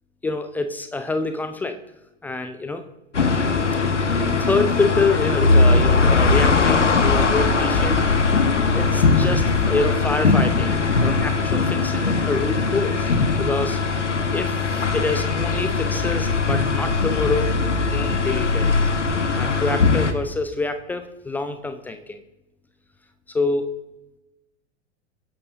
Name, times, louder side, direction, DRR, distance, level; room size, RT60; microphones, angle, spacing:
voice 1, 0.2-1.8 2.2-2.8 4.1-8.1 8.7-13.1 13.4-13.8 14.3-17.6 17.9-18.7 19.4-22.2 23.3-23.7, left 3 dB, 5° left, 8 dB, 0.3 m, -26 dB
sound 1, 3.1-20.1, left 4 dB, 80° left, 1.3 m, -20 dB
23.0 x 11.0 x 2.6 m, 0.96 s
figure-of-eight pair, 95°, 36 cm